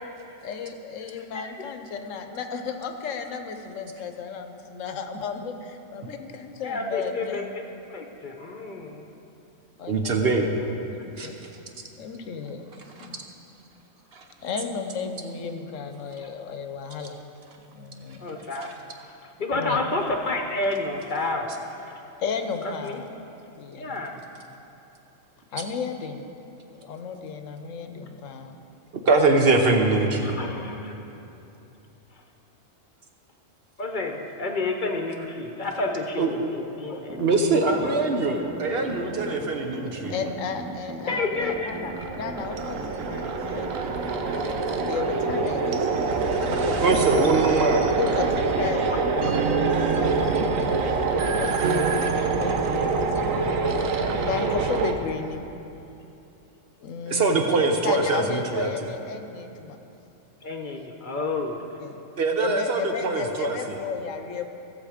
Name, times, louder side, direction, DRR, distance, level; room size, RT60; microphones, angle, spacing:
voice 1, 0.4-7.4 9.8-10.2 10.9-11.4 12.0-12.7 13.0-13.2 14.4-17.2 17.7-18.2 19.5-19.8 22.2-23.1 23.6-24.1 25.5-26.3 26.7-28.5 40.1-42.8 43.1-43.7 44.1-45.9 46.4-46.8 47.0-47.2 48.0-51.8 52.3-53.0 54.1-55.5 56.8-57.6 57.8-59.8 61.6-62.0 62.4-64.5, left 5 dB, 80° left, 6 dB, 1.1 m, -34 dB
voice 2, 6.6-7.4 7.9-9.0 18.2-18.7 19.4-21.5 22.6-23.0 23.7-24.2 30.2-31.0 33.8-37.9 41.1-41.7 47.6-47.9 48.9-49.0 49.3-49.5 54.2-54.3 60.4-61.6, left 2 dB, 45° left, 3 dB, 0.9 m, -30 dB
voice 3, 9.9-10.5 11.2-11.3 14.1-14.2 28.9-30.3 36.2-36.5 37.2-40.1 46.8-47.8 57.1-58.7 62.2-63.8, right 3 dB, 55° right, 3 dB, 1.0 m, -23 dB
sound 1, 37.1-50.5, right 1 dB, 25° right, 0.4 m, -38 dB
sound 2, 41.4-54.9, right 4 dB, 90° right, 1.1 m, -25 dB
16.0 x 6.8 x 5.0 m, 2.9 s
omnidirectional pair, 1.3 m